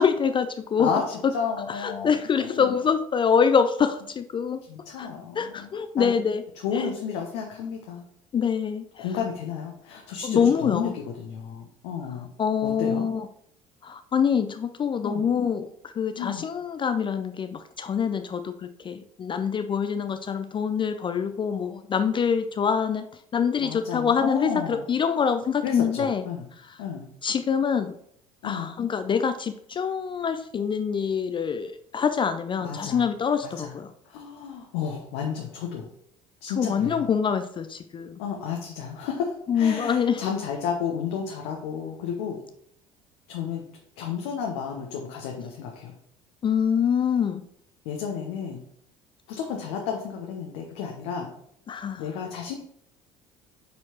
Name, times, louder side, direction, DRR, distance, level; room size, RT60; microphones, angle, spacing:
voice 1, 0.0-0.9 1.2-1.3 1.8-4.6 5.0-5.1 5.4-6.4 6.7-6.9 8.3-9.0 10.2-10.9 12.4-13.3 13.8-23.1 23.3-26.2 27.2-28.0 28.4-33.9 36.6-38.2 39.5-40.3 46.4-47.4 51.7-52.0, left 7 dB, 30° left, 9 dB, 0.5 m, -25 dB
voice 2, 0.8-2.7 4.7-5.7 6.0-6.1 6.6-8.1 8.9-12.3 12.6-13.1 15.0-15.3 16.2-16.5 23.6-24.8 25.6-26.5 26.8-27.1 28.4-28.7 32.6-33.0 33.4-33.7 34.0-35.9 36.4-37.1 38.2-42.4 43.3-43.6 44.0-45.9 47.8-48.6 49.3-51.3 52.0-52.5, left 7 dB, 60° left, 1 dB, 0.9 m, -32 dB
8.4 x 4.4 x 2.9 m, 0.68 s
figure-of-eight pair, 60°, 18 cm